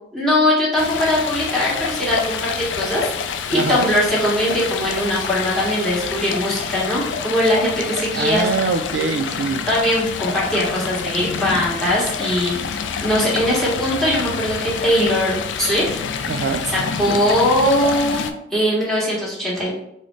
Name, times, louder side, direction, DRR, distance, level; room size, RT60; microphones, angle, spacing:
voice 1, 0.1-3.1 3.5-8.5 9.7-12.7 13.0-15.9 16.3-16.5 17.0-19.7, left 1 dB, ahead, -6 dB, 0.9 m, -20 dB
Stream, 0.8-18.3, left 6 dB, 85° left, 0.3 m, -27 dB
voice 2, 3.5-3.9 8.1-9.7 16.2-16.7, right 4 dB, 65° right, 8 dB, 0.3 m, -23 dB
3.8 x 2.1 x 3.1 m, 0.78 s
head